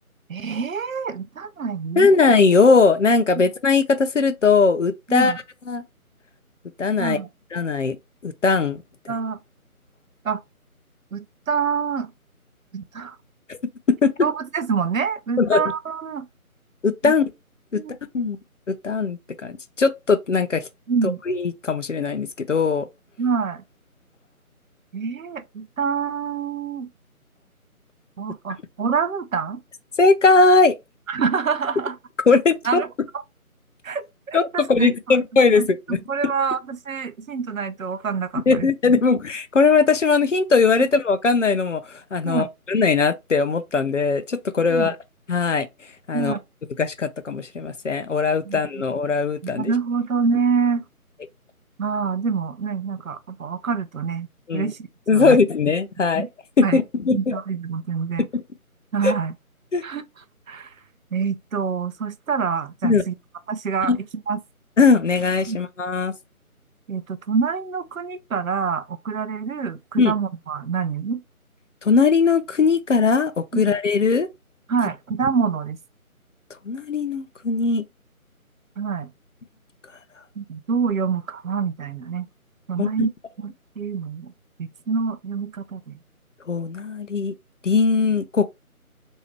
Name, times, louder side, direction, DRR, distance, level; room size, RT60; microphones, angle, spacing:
voice 1, 0.3-2.2 5.1-5.4 7.0-7.3 9.1-9.4 10.2-10.4 11.1-12.1 12.7-13.2 14.2-16.3 17.0-17.1 17.7-17.9 20.9-21.2 23.2-23.6 24.9-26.9 28.2-29.6 31.1-32.0 32.6-32.9 33.1-33.2 33.8-35.2 35.5-35.7 36.1-38.7 42.2-42.5 44.7-44.9 46.1-46.4 48.5-48.8 49.4-50.8 51.8-54.3 54.5-55.4 56.2-56.3 56.6-56.8 57.1-58.3 58.9-59.3 59.8-60.0 60.5-60.7 61.1-63.1 63.5-63.9 64.3-64.4 65.5-65.6 66.9-71.2 73.5-73.7 74.7-75.8 78.8-79.1 80.4-82.3 82.7-83.1 83.4-84.3 84.6-86.0, right 5 dB, 65° right, 0.5 m, -26 dB
voice 2, 2.0-5.3 5.7-5.8 6.8-7.2 7.5-8.0 8.2-8.8 13.5-13.6 13.9-14.1 15.4-15.6 16.8-17.2 17.7-17.8 18.1-18.4 18.8-20.7 21.3-22.9 30.0-30.7 32.3-32.8 34.3-36.0 38.5-45.0 45.3-45.7 46.1-46.3 46.8-49.7 54.5-54.7 55.1-56.2 56.6-57.4 58.3-58.4 59.0-59.1 59.7-59.8 62.8-63.0 63.9-64.0 64.8-66.1 70.0-70.1 71.8-74.3 76.7-77.8 82.8-83.1 86.5-87.3 87.6-88.5, left 4 dB, 55° left, 0.5 m, -19 dB
3.1 x 2.7 x 3.0 m
figure-of-eight pair, 160°, 44 cm